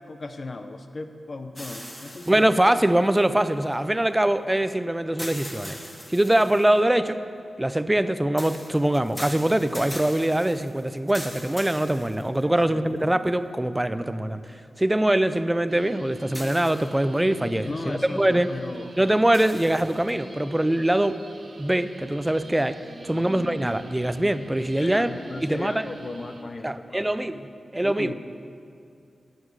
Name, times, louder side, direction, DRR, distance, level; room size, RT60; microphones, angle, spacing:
voice 1, 0.1-2.4 12.4-13.0 17.6-18.9 23.1-23.3 24.8-27.1 27.8-28.1, left 3 dB, 40° left, 7 dB, 0.7 m, -36 dB
sound 1, 1.5-3.7 5.2-6.8 8.4-12.6 13.3-13.4 16.3-17.2 19.3-20.1, equal, 10° left, 2.1 m, -40 dB
voice 2, 2.3-5.8 6.1-7.2 7.6-18.5 19.0-21.2 21.6-22.8 23.0-25.1 25.4-25.8 26.6-28.1, right 1 dB, 10° right, 12 dB, 0.5 m, -23 dB
sound 2, 15.7-26.4, right 2 dB, 55° right, 1.5 m, -43 dB
22.0 x 9.5 x 4.8 m, 2.4 s
wide cardioid pair, 115°, 0 cm